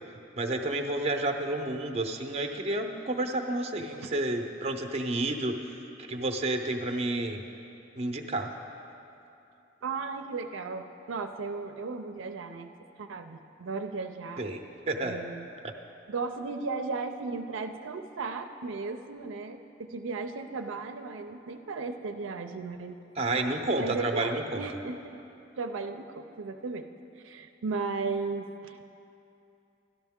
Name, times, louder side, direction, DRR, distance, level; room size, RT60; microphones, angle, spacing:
voice 1, 0.4-7.4 8.0-8.5 14.4-14.6 14.9-15.2 15.6-15.7 23.2-24.6, right 2 dB, 35° right, 4 dB, 0.6 m, -30 dB
voice 2, 9.8-12.7 13.0-14.5 15.0-15.5 16.1-23.0 23.8-25.2 25.6-26.9 27.2-28.9, right 4 dB, 90° right, 7 dB, 0.5 m, -35 dB
12.5 x 11.5 x 3.6 m, 2.8 s
head